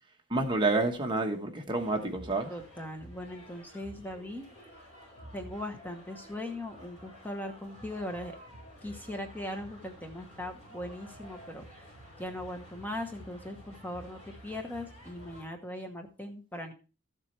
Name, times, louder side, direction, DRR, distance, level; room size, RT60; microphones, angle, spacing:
voice 1, 0.3-2.5, right 2 dB, 25° right, 1.2 m, -29 dB
sound 1, 1.8-15.4, equal, 30° left, 5.8 m, -51 dB
voice 2, 2.5-4.5 5.3-8.4 8.8-11.9 12.2-16.7, left 1 dB, 10° left, 1.0 m, -39 dB
13.5 x 7.4 x 3.3 m
head